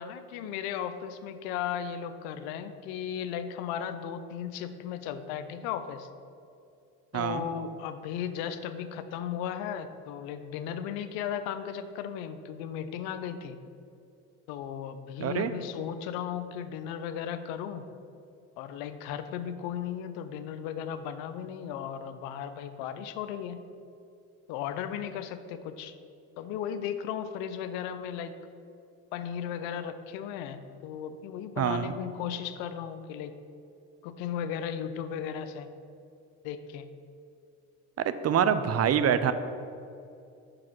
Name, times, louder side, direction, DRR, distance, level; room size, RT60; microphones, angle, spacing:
voice 1, 0.0-6.1 7.1-13.6 14.5-17.8 18.6-23.6 24.5-25.9 26.4-28.3 29.1-33.3 34.0-35.7 36.4-36.8, left 8 dB, 85° left, 11 dB, 0.6 m, -36 dB
voice 2, 7.1-7.4 15.2-15.5 31.6-31.9 38.0-39.3, right 8 dB, 45° right, 12 dB, 0.5 m, -25 dB
5.9 x 4.8 x 5.9 m, 2.5 s
supercardioid pair, 75°, 35 cm